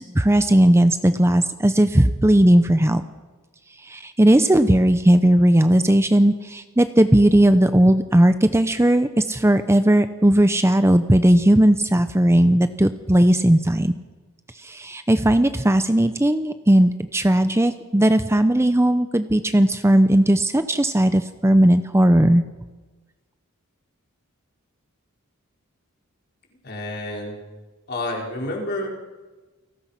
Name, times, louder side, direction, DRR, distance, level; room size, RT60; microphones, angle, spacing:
voice 1, 0.0-3.0 3.8-13.9 14.6-22.4, right 1 dB, 10° right, 10 dB, 0.7 m, -17 dB
voice 2, 26.6-27.4 27.9-28.9, left 1 dB, 50° left, 0 dB, 4.7 m, -29 dB
29.0 x 19.0 x 5.8 m, 1.2 s
head